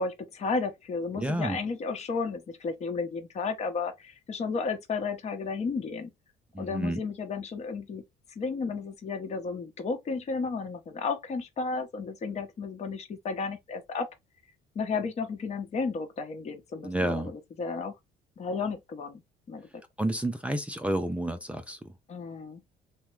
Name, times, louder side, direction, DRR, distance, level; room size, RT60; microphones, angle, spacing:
voice 1, 0.0-6.1 6.6-8.0 8.4-14.1 14.7-18.0 18.4-19.2 19.5-19.8 22.1-22.6, left 4 dB, 40° left, 0.8 m, -33 dB
voice 2, 1.2-1.6 6.5-7.0 16.8-17.3 20.0-21.9, right 1 dB, 5° right, 0.4 m, -30 dB
2.9 x 2.1 x 3.2 m
cardioid pair, 110°, 17 cm